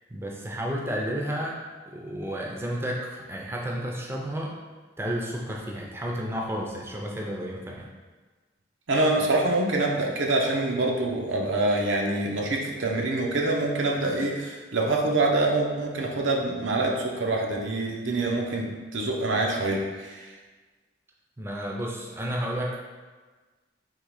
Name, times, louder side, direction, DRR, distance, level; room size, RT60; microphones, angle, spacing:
voice 1, 0.1-1.6 1.9-4.5 5.0-7.8 21.4-22.8, equal, 15° right, -2 dB, 0.5 m, -31 dB
voice 2, 8.9-20.3, right 2 dB, 90° right, -1 dB, 0.7 m, -25 dB
3.8 x 2.9 x 4.8 m, 1.3 s
head